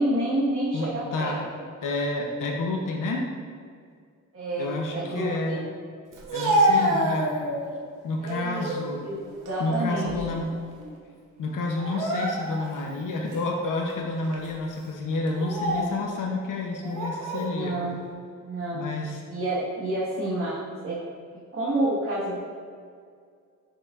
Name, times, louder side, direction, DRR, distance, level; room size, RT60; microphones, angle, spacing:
voice 1, 0.0-1.6 4.3-5.6 8.2-8.7 9.0-9.2 9.4-10.3 17.4-18.0 18.4-18.9 19.3-21.0 21.5-22.4, right 1 dB, 45° right, -9 dB, 1.4 m, -29 dB
voice 2, 0.7-1.4 1.8-3.3 4.6-5.6 6.3-7.5 8.0-9.0 9.6-10.5 11.4-17.9 18.7-19.2, left 2 dB, 80° left, 0 dB, 0.8 m, -29 dB
Speech, 6.1-7.8 8.3-8.8 9.3-10.5 10.8-11.0 11.8-12.8 13.3-13.4 14.2-14.5 15.3-16.0 16.8-17.5, right 1 dB, 90° right, 1.0 m, -27 dB
6.7 x 5.9 x 2.4 m, 2.1 s
cardioid pair, 105°, 31 cm